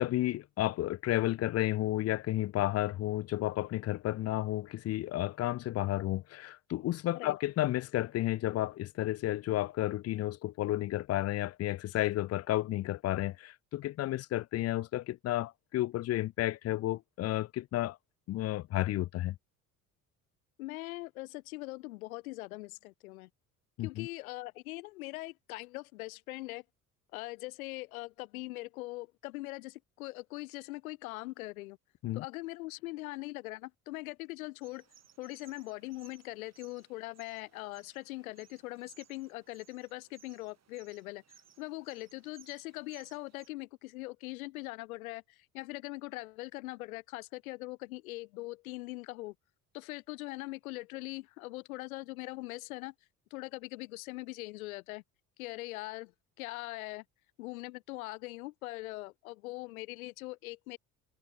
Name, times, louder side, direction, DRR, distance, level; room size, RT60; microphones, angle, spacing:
voice 1, 0.0-18.0 18.3-19.4 23.8-24.1 32.0-32.2, left 15 dB, 35° left, 0.5 m, -32 dB
voice 2, 20.6-23.3 23.8-26.6 27.1-31.8 32.1-34.8 35.2-49.3 49.7-52.9 53.3-55.0 55.4-56.1 56.4-57.0 57.4-60.8, left 21 dB, 75° left, 0.7 m, -42 dB
sound 1, 34.6-43.5, right 8 dB, 35° right, 2.9 m, -62 dB
hypercardioid pair, 55°, 43 cm